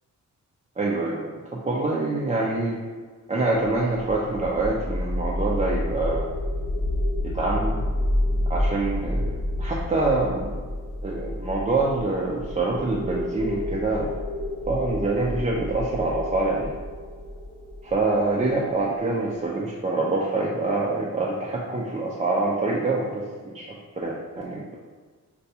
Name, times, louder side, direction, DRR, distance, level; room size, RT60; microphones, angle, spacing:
voice 1, 0.8-2.8 3.3-6.3 7.2-7.8 8.5-10.6 11.0-14.1 14.7-16.7 17.8-24.7, right 2 dB, 20° right, -4 dB, 0.4 m, -26 dB
sound 1, 4.0-18.8, left 1 dB, 70° left, 0.6 m, -29 dB
5.3 x 2.2 x 2.7 m, 1.5 s
wide cardioid pair, 140°, 31 cm